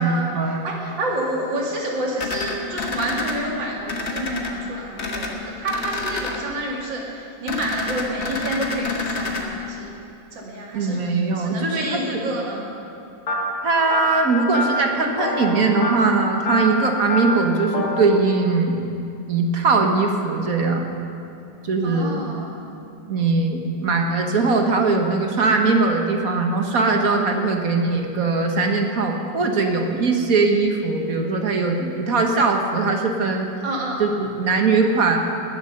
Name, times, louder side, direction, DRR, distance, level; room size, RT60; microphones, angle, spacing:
voice 1, 0.0-0.8 10.7-12.2 13.6-18.8 19.3-20.8 21.6-22.2 23.1-33.5 34.0-35.2, right 3 dB, 50° right, 3 dB, 1.5 m, -20 dB
voice 2, 0.6-9.9 10.3-11.0 11.4-12.7 21.8-22.6 33.6-34.0, right 1 dB, 75° right, -2 dB, 2.9 m, -29 dB
sound 1, 2.2-3.3 3.9-4.5 5.0-5.3 5.6-6.4 7.5-9.4, left 3 dB, 40° left, 1.4 m, -28 dB
sound 2, 13.3-18.0, left 1 dB, 60° left, 1.9 m, -26 dB
20.0 x 8.0 x 6.6 m, 2.6 s
omnidirectional pair, 2.0 m